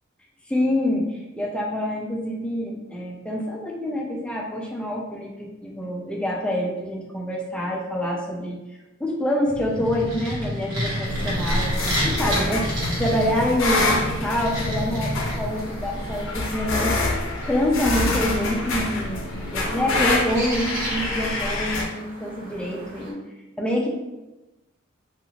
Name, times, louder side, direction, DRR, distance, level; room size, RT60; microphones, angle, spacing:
voice 1, 0.5-8.6 9.0-12.7 13.0-17.0 17.4-23.2 23.6-23.9, left 1 dB, 5° left, -1 dB, 0.4 m, -26 dB
sound 1, 9.4-15.8, equal, 75° right, 1.0 m, -29 dB
sound 2, 11.0-21.8, left 2 dB, 65° left, 0.5 m, -26 dB
sound 3, 11.2-23.1, right 1 dB, 45° right, 0.6 m, -40 dB
2.6 x 2.4 x 2.9 m, 1.0 s
head